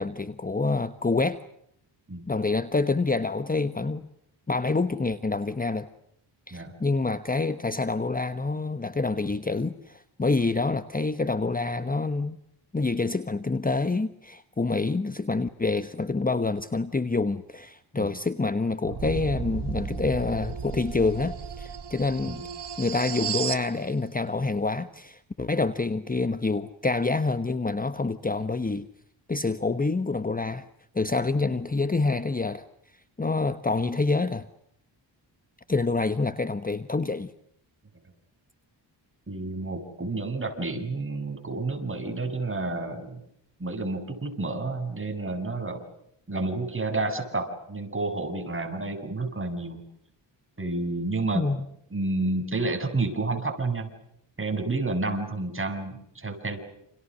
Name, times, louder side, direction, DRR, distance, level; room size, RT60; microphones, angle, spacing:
voice 1, 0.0-1.4 2.3-4.0 4.5-5.9 6.5-12.4 12.7-22.4 22.8-28.9 29.3-30.7 30.9-32.6 33.2-34.5 35.7-37.3 51.3-51.6, left 3 dB, 20° left, 11 dB, 1.2 m, -27 dB
sound 1, 18.8-23.7, right 7 dB, 60° right, 1.6 m, -34 dB
voice 2, 39.3-43.2 43.6-45.8 46.3-49.8 50.6-51.4 51.9-53.9 54.4-56.6, right 3 dB, 25° right, 5 dB, 7.4 m, -30 dB
29.0 x 29.0 x 6.5 m, 0.74 s
cardioid pair, 95°, 46 cm